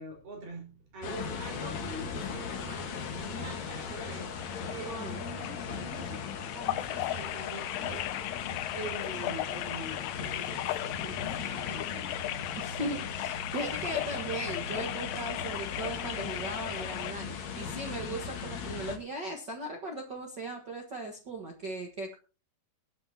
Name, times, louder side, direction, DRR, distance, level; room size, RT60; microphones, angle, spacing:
voice 1, 0.0-8.1 8.7-12.4, right 2 dB, 50° right, 0 dB, 6.2 m, -44 dB
sound 1, 1.0-19.0, left 6 dB, 55° left, 2.4 m, -39 dB
sound 2, 2.7-17.1, left 14 dB, 80° left, 2.0 m, -37 dB
voice 2, 12.6-22.2, right 2 dB, 80° right, 2 dB, 0.9 m, -38 dB
22.0 x 9.2 x 2.9 m, 0.34 s
omnidirectional pair, 4.8 m